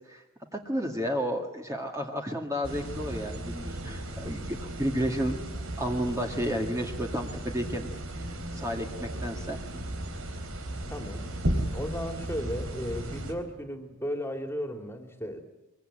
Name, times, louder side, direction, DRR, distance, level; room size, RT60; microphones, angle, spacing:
voice 1, 0.5-5.4 5.8-7.9 8.2-9.6, equal, 15° right, 2 dB, 2.1 m, -32 dB
sound 1, 2.6-13.3, right 1 dB, 80° right, 3.9 m, -35 dB
voice 2, 10.9-11.2 11.7-15.4, equal, 10° left, 6 dB, 2.7 m, -35 dB
24.0 x 23.0 x 9.0 m, 1.0 s
head